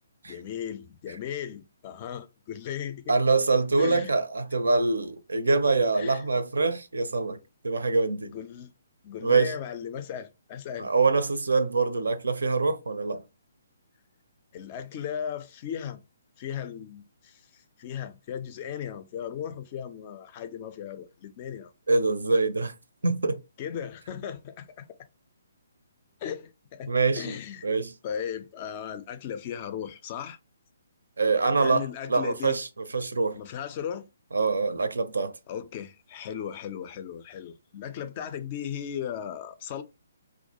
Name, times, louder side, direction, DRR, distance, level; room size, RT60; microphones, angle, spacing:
voice 1, 0.3-3.0 3.8-4.1 6.0-6.2 8.2-8.7 9.0-10.9 14.5-16.0 16.4-21.7 23.6-24.9 26.2-27.7 28.0-30.4 31.6-32.6 33.3-34.1 35.5-39.8, left 9 dB, 35° left, 0.3 m, -36 dB
voice 2, 3.1-7.4 7.6-8.3 9.2-9.5 10.8-13.2 21.9-22.7 23.0-23.4 26.9-27.4 27.6-27.9 31.2-32.7 32.9-33.4 34.3-35.3, right 3 dB, 80° right, 0.4 m, -24 dB
2.2 x 2.1 x 2.8 m
figure-of-eight pair, 140°, 0 cm